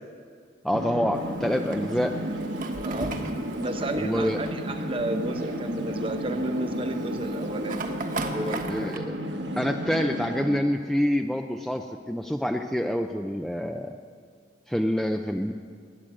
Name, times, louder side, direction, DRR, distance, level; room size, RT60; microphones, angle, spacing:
voice 1, 0.6-2.1 4.0-4.4 8.5-9.2 9.6-14.0 14.7-15.5, equal, ahead, 4 dB, 0.4 m, -27 dB
sound 1, 0.7-10.6, right 1 dB, 70° right, 1.4 m, -33 dB
Fire, 1.1-9.0, right 2 dB, 45° right, 1.3 m, -39 dB
voice 2, 2.8-3.2 3.5-8.9, right 1 dB, 30° right, 6 dB, 1.0 m, -32 dB
17.0 x 10.5 x 7.6 m, 2.1 s
head